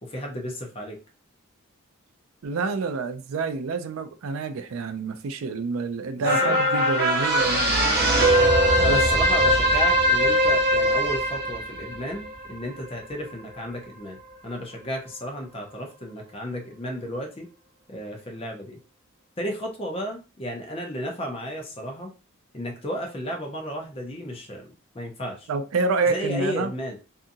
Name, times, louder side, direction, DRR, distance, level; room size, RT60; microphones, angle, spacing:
voice 1, 0.0-1.0 6.2-6.5 8.8-17.5 17.9-18.8 19.4-22.1 22.5-24.7 24.9-25.5 26.1-27.0, equal, 25° left, 0.6 m, -33 dB
voice 2, 2.4-7.9 8.8-9.0 25.5-26.7, right 4 dB, 80° right, 0.4 m, -28 dB
sound 1, 6.2-12.9 13.3-13.4, equal, 50° right, 0.8 m, -21 dB
2.7 x 2.5 x 2.6 m
head